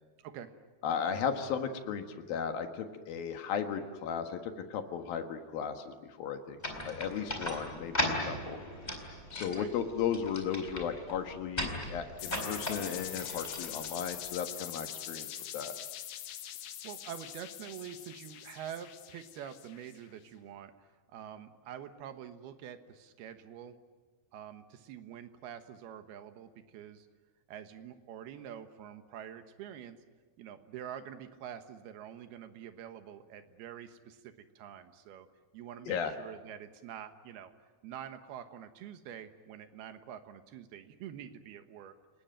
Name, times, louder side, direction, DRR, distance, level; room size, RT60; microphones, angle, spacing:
voice 1, 0.8-6.6 6.8-8.6 9.3-15.3 15.5-15.7 35.9-36.1, left 7 dB, 65° left, 6 dB, 3.0 m, -35 dB
sound 1, 6.6-14.4, left 1 dB, 10° left, 3.7 m, -38 dB
sound 2, 12.2-20.0, left 11 dB, 85° left, 3.9 m, -43 dB
voice 2, 16.8-23.8 24.3-27.1 27.5-30.0 30.4-35.3 35.5-37.5 37.8-42.0, right 9 dB, 70° right, 9 dB, 3.0 m, -46 dB
29.5 x 19.5 x 9.1 m, 1.3 s
omnidirectional pair, 5.1 m